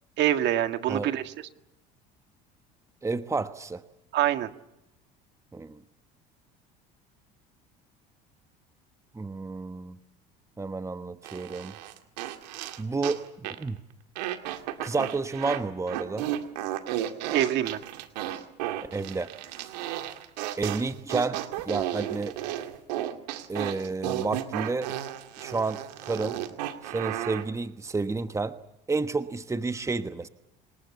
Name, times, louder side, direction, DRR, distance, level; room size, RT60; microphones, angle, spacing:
voice 1, 0.2-1.3 4.1-4.5 17.3-17.8, right 12 dB, 55° right, 9 dB, 1.8 m, -25 dB
voice 2, 3.0-3.8 5.5-5.8 9.1-10.0 10.6-11.7 12.8-13.2 13.6-13.8 14.8-16.3 18.9-19.3 20.6-22.3 23.5-24.9 25.4-26.4 26.8-28.6 28.9-30.3, right 3 dB, 15° right, 11 dB, 1.2 m, -30 dB
sound 1, 11.2-13.2 13.4-13.7 14.2-15.6 15.9-27.4, right 12 dB, 85° right, 2.1 m, -33 dB
26.0 x 20.0 x 8.3 m, 0.88 s
hypercardioid pair, 80°, 21 cm